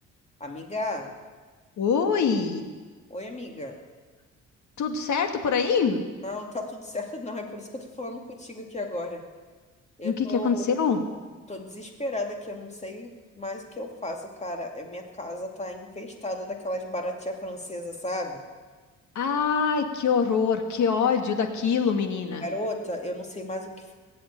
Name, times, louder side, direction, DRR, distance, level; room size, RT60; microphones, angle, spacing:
voice 1, 0.4-1.1 3.1-3.8 6.2-9.2 10.0-10.6 11.5-18.4 22.4-23.9, left 1 dB, 20° left, 2 dB, 2.5 m, -34 dB
voice 2, 1.8-2.7 4.8-6.0 10.0-11.1 19.2-22.5, left 6 dB, 70° left, 6 dB, 1.9 m, -24 dB
19.5 x 7.8 x 8.8 m, 1.4 s
cardioid pair, 90°, 30 cm